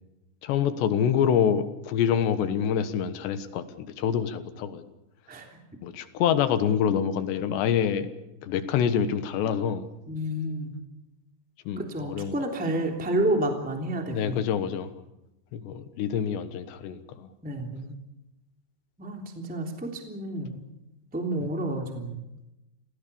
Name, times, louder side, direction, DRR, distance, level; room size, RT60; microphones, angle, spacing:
voice 1, 0.4-4.8 5.8-8.1 8.4-9.9 11.7-12.4 14.1-14.9 15.5-17.3, left 8 dB, 75° left, 11 dB, 3.4 m, -26 dB
voice 2, 5.3-5.6 10.1-10.8 11.8-14.5 17.4-18.0 19.0-20.6 21.1-22.2, right 1 dB, ahead, 3 dB, 2.3 m, -30 dB
28.5 x 17.5 x 7.0 m, 0.94 s
omnidirectional pair, 5.2 m